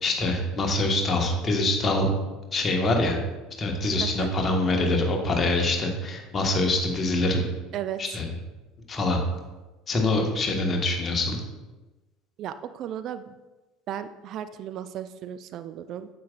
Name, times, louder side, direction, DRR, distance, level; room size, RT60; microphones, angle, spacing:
voice 1, 0.0-2.1 2.5-3.2 3.6-7.5 8.0-8.3 8.9-9.2 9.9-11.4, left 2 dB, 30° left, 2 dB, 1.4 m, -24 dB
voice 2, 12.4-13.2 13.9-16.1, right 10 dB, 45° right, 12 dB, 0.3 m, -35 dB
9.3 x 7.5 x 2.4 m, 1.1 s
figure-of-eight pair, 65°, 0 cm